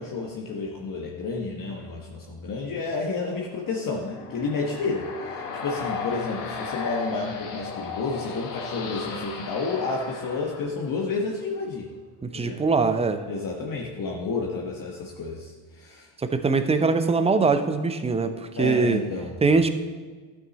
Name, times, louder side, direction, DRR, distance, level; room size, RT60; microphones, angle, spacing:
voice 1, 0.0-11.9 12.3-12.6 13.3-16.1 18.6-19.4, left 3 dB, 45° left, -1 dB, 1.3 m, -30 dB
sound 1, 3.7-11.2, left 5 dB, 90° left, 1.5 m, -35 dB
voice 2, 12.2-13.2 16.2-19.0 19.4-19.7, right 4 dB, 15° right, 9 dB, 0.6 m, -22 dB
12.0 x 6.4 x 4.1 m, 1.4 s
supercardioid pair, 90°, 47 cm